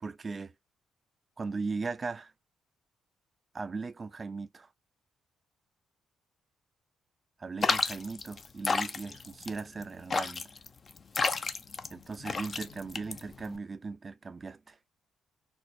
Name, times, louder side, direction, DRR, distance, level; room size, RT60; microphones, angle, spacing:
voice 1, 0.0-0.5 1.4-2.3 3.5-4.7 7.4-10.5 11.9-14.8, right 4 dB, 40° right, 0.5 m, -38 dB
sound 1, 7.6-13.6, left 4 dB, 45° left, 0.5 m, -32 dB
4.4 x 2.0 x 2.4 m
supercardioid pair, 55°, 0 cm